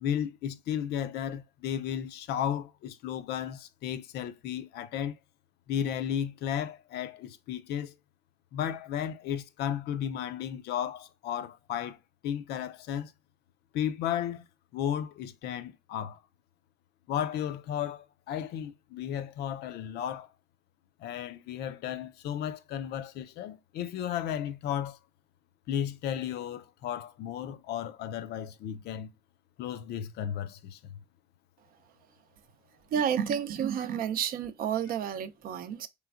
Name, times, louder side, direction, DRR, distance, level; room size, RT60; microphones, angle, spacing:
voice 1, 0.0-5.2 5.7-7.9 8.5-12.0 12.2-13.1 13.7-14.4 14.7-16.2 17.1-20.3 21.0-25.0 25.7-29.1 29.6-31.0, left 9 dB, 75° left, 0.5 m, -34 dB
voice 2, 32.9-35.9, right 8 dB, 60° right, 0.5 m, -30 dB
3.3 x 3.1 x 2.3 m
cardioid pair, 110°, 17 cm